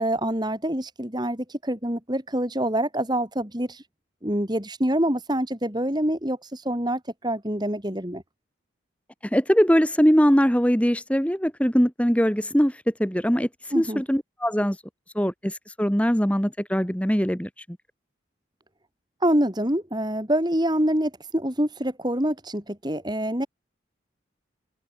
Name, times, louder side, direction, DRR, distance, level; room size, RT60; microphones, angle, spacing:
voice 1, 0.0-3.8 4.2-8.2 13.7-14.0 19.2-23.5, right 1 dB, 20° right, 3.5 m, -26 dB
voice 2, 9.2-14.8 15.1-17.6, equal, 5° left, 2.4 m, -22 dB
head